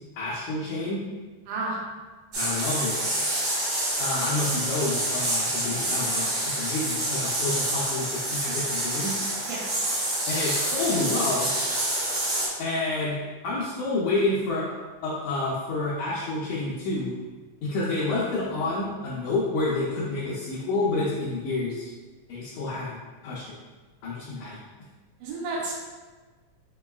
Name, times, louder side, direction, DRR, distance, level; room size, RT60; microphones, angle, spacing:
voice 1, 0.2-1.0 2.4-3.0 4.0-9.1 10.3-11.5 12.6-13.2 13.4-14.7 15.0-17.1 17.6-21.9 22.3-23.0 23.2-23.6 24.0-24.6, left 2 dB, 75° left, -7 dB, 1.8 m, -29 dB
voice 2, 1.5-1.8 9.5-9.8 25.2-25.7, right 3 dB, 85° right, -4 dB, 2.3 m, -31 dB
sound 1, 2.3-12.5, right 1 dB, 60° right, 1.1 m, -27 dB
5.3 x 3.0 x 2.3 m, 1.3 s
omnidirectional pair, 3.7 m